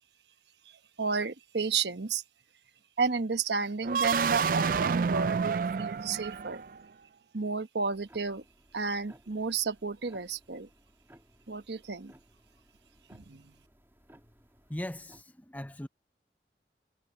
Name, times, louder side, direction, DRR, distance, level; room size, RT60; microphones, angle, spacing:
voice 1, 1.0-2.2 3.0-6.6 7.3-8.4 8.7-10.7 11.5-12.1 13.1-13.5, right 5 dB, 75° right, 1.1 m, -32 dB
sound 1, 3.8-6.8, right 5 dB, 50° right, 0.3 m, -29 dB
sound 2, 7.9-15.2, right 1 dB, 15° right, 2.9 m, -61 dB
voice 2, 14.7-15.9, left 1 dB, 10° left, 0.7 m, -39 dB
head